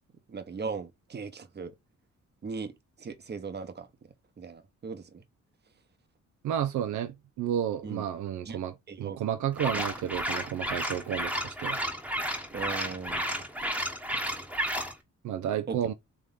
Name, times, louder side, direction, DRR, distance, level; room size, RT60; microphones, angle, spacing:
voice 1, 0.3-1.7 2.4-2.7 3.0-3.9 4.4-5.2 7.8-8.0 8.4-8.6 8.9-9.2 9.5-9.8 12.5-13.4 14.1-14.2 15.7-15.8, right 5 dB, 35° right, 0.9 m, -38 dB
voice 2, 6.4-8.7 9.0-11.8 15.2-15.9, right 10 dB, 85° right, 0.5 m, -31 dB
sound 1, 9.5-14.9, equal, 5° right, 1.0 m, -32 dB
3.6 x 3.2 x 3.7 m
cardioid pair, 90°, 29 cm